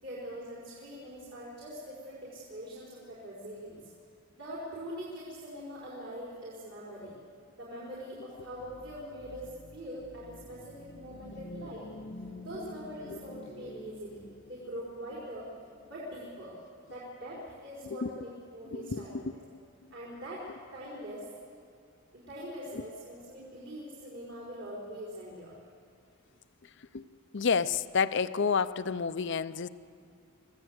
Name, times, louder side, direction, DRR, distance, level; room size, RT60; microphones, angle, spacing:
voice 1, 0.0-3.8 4.4-7.1 7.6-9.5 9.7-11.9 12.4-15.5 15.9-16.5 16.9-19.3 19.9-21.3 22.1-25.5, equal, 60° right, -6 dB, 4.9 m, -43 dB
sound 1, 8.4-16.7, left 1 dB, 80° left, 1.5 m, -49 dB
voice 2, 17.8-18.3 18.7-19.6 22.7-22.8 26.6-27.1 27.3-29.7, left 5 dB, 60° left, 14 dB, 0.6 m, -31 dB
25.0 x 16.0 x 8.0 m, 2.4 s
head